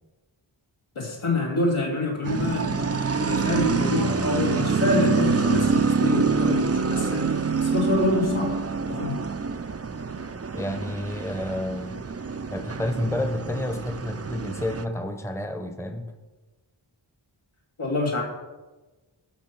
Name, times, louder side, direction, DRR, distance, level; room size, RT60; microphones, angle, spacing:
voice 1, 0.9-8.6 8.9-9.2 17.8-18.2, left 2 dB, 80° left, -2 dB, 3.1 m, -26 dB
sound 1, 2.2-14.9, right 5 dB, 30° right, 0.6 m, -26 dB
voice 2, 10.5-12.0 12.5-16.1, left 1 dB, 5° left, 7 dB, 1.0 m, -30 dB
13.0 x 5.9 x 6.0 m, 1.2 s
wide cardioid pair, 65°, 48 cm